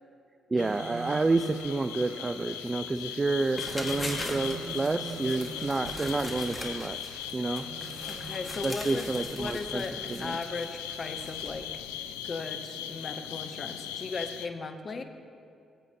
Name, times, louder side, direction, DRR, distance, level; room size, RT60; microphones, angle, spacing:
voice 1, 0.5-7.6 8.6-10.4, right 3 dB, 30° right, 10 dB, 0.3 m, -29 dB
sound 1, 0.6-14.5, left 10 dB, 85° left, 0.3 m, -39 dB
sound 2, 0.6-2.6 3.4-6.6 7.3-10.7, right 4 dB, 65° right, 1.1 m, -44 dB
sound 3, 3.4-11.6, left 1 dB, 30° left, 1.7 m, -41 dB
voice 2, 8.1-9.1 9.3-11.9 12.2-15.0, left 4 dB, 45° left, 7 dB, 0.8 m, -37 dB
16.5 x 8.2 x 2.9 m, 2.4 s
hypercardioid pair, 45°, 0 cm